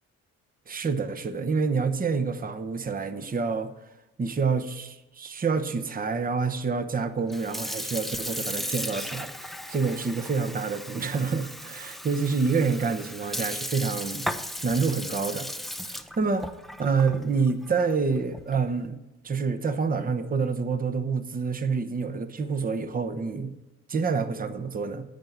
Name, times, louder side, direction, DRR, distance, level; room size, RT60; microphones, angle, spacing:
voice 1, 0.7-3.7 4.2-14.3 14.6-15.5 15.8-16.5 16.8-23.5 23.9-25.0, right 5 dB, 30° right, 10 dB, 0.9 m, -27 dB
Sink (filling or washing) / Fill (with liquid), 7.2-18.7, equal, ahead, 0.6 m, -36 dB
10.5 x 7.9 x 5.9 m, 1.0 s
cardioid pair, 90°, 30 cm